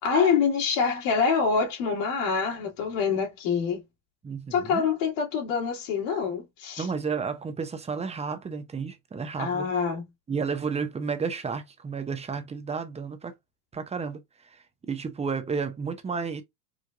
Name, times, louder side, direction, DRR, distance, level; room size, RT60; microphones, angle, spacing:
voice 1, 0.0-3.8 4.5-6.9 9.4-10.0, left 6 dB, 70° left, 2.4 m, -25 dB
voice 2, 4.2-4.9 6.8-9.7 10.3-13.3 13.7-16.4, right 5 dB, 15° right, 0.5 m, -32 dB
4.8 x 2.4 x 2.2 m
supercardioid pair, 125°, 50 cm